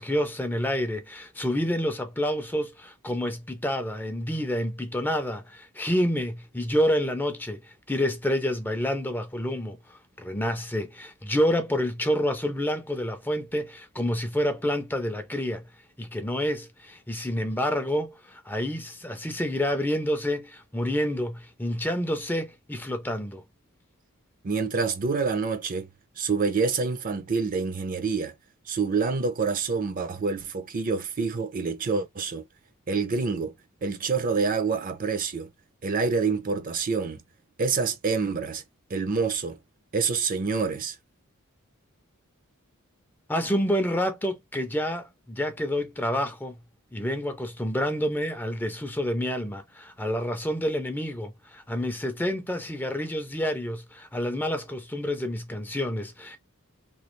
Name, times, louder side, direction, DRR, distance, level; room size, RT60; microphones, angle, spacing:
voice 1, 0.0-9.8 10.2-15.6 16.0-23.4 43.3-46.6 46.9-56.4, equal, 10° left, 0.5 m, -28 dB
voice 2, 24.4-25.9 26.2-28.3 28.7-32.4 32.9-33.5 33.8-35.5 35.8-37.2 37.6-38.6 38.9-39.6 39.9-41.0, right 4 dB, 40° right, 0.5 m, -27 dB
3.0 x 2.3 x 3.1 m
head